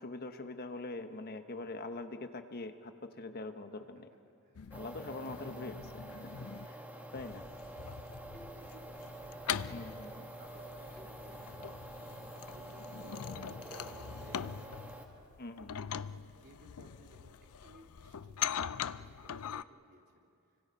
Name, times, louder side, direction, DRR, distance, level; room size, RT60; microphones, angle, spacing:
voice 1, 0.0-4.1 4.7-6.8 7.1-7.4 9.7-10.2 15.4-16.0, left 2 dB, 45° left, 7 dB, 1.1 m, -44 dB
voice 2, 4.4-4.8 6.2-7.1 7.8-8.0 8.3-11.8 12.3-15.4 16.0-20.3, right 1 dB, 50° right, 0 dB, 3.4 m, -60 dB
sound 1, 4.5-6.7 7.2-19.6, left 8 dB, 80° left, 0.5 m, -42 dB
sound 2, 4.7-15.1, right 1 dB, 10° right, 2.0 m, -47 dB
sound 3, 8.3-9.3 11.0-11.9 13.2-13.9, left 1 dB, 10° left, 2.0 m, -60 dB
30.0 x 25.0 x 5.4 m, 2.4 s
head